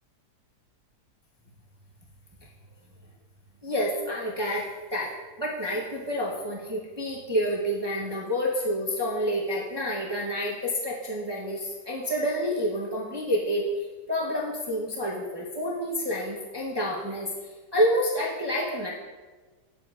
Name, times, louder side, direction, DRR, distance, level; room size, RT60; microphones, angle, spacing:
voice 1, 3.6-5.1 5.4-17.3 17.7-18.9, equal, 20° right, -5 dB, 0.7 m, -28 dB
9.6 x 7.7 x 2.4 m, 1.4 s
omnidirectional pair, 1.8 m